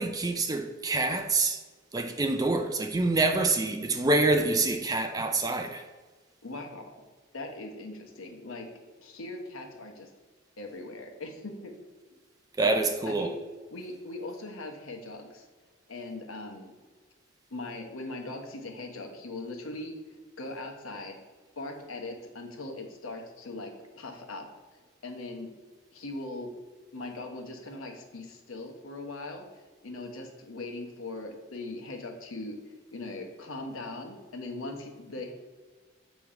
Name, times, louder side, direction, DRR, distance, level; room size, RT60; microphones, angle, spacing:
voice 1, 0.0-1.6 1.9-5.8 12.6-13.3, right 2 dB, 20° right, 0.4 m, -26 dB
voice 2, 6.4-6.9 7.3-8.7 9.0-10.1 10.6-11.7 12.6-13.4 13.7-15.4 15.9-16.7 17.5-19.9 20.4-21.2 21.6-24.5 25.0-25.5 25.9-26.5 26.9-29.4 29.8-32.6 32.9-35.3, left 2 dB, 85° left, 1.0 m, -40 dB
7.2 x 3.0 x 5.0 m
head